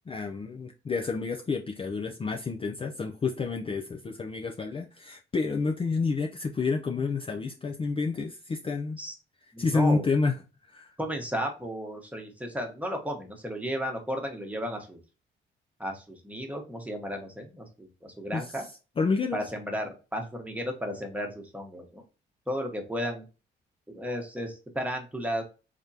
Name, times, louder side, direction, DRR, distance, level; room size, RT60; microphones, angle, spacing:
voice 1, 0.1-9.0 9.6-10.3 10.7-10.9 18.3-18.5 19.0-19.4, left 4 dB, 25° left, 0.5 m, -29 dB
voice 2, 9.5-10.1 11.0-15.0 15.8-18.6 19.3-22.0 22.5-23.2 23.9-25.4, equal, 5° right, 1.1 m, -34 dB
3.6 x 3.4 x 2.7 m
cardioid pair, 90°, 20 cm